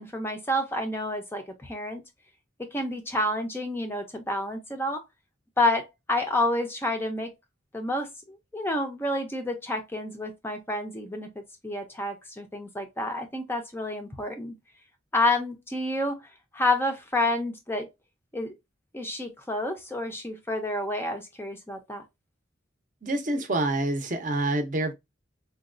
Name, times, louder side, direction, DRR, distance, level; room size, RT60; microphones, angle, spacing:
voice 1, 0.0-2.0 2.6-5.0 5.6-7.3 7.7-14.6 15.1-16.2 16.5-17.9 18.3-18.6 18.9-22.0, left 1 dB, 10° left, 0.4 m, -29 dB
voice 2, 23.0-24.9, right 2 dB, 40° right, 0.6 m, -27 dB
3.9 x 2.2 x 2.4 m
head